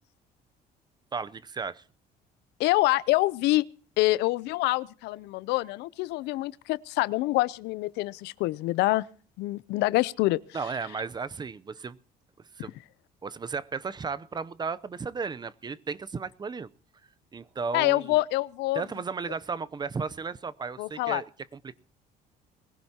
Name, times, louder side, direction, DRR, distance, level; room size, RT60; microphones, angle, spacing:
voice 1, 1.1-1.8 10.5-12.0 12.6-12.7 13.2-16.7 17.3-18.2 18.7-21.3 21.6-21.8, right 5 dB, 25° right, 0.6 m, -34 dB
voice 2, 2.6-3.7 4.0-9.1 9.4-10.4 17.7-18.8 20.8-21.2, left 19 dB, 90° left, 0.6 m, -26 dB
22.0 x 16.0 x 2.9 m
cardioid pair, 110°, 17 cm